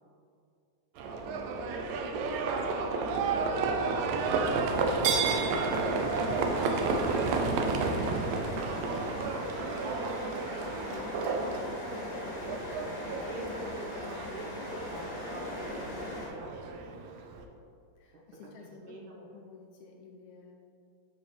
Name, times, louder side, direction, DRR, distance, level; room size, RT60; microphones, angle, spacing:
Livestock farm animals working animals, 1.0-17.4, right 4 dB, 90° right, 2.2 m, -32 dB
voice 1, 1.2-7.7 8.6-16.9 18.1-19.3, right 1 dB, 70° right, -4 dB, 2.5 m, -46 dB
sound 1, 3.7-7.4, equal, 50° right, 2.3 m, -52 dB
sound 2, 5.1-16.3, left 1 dB, 50° left, 0.9 m, -39 dB
voice 2, 18.0-19.0 19.3-20.5, left 4 dB, 75° left, 0 dB, 1.8 m, -53 dB
9.4 x 3.9 x 3.3 m, 2.5 s
omnidirectional pair, 3.8 m